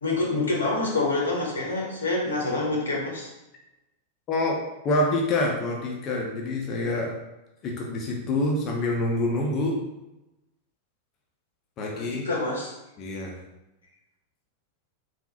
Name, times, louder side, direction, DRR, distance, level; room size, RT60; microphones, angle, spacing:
voice 1, 0.0-3.3 11.9-12.7, left 2 dB, 70° left, -2 dB, 0.8 m, -27 dB
voice 2, 4.3-7.1 7.6-9.8 11.8-12.3 13.0-13.4, left 2 dB, 35° left, -1 dB, 0.6 m, -26 dB
3.6 x 2.4 x 2.8 m, 0.95 s
figure-of-eight pair, 90°, 0 cm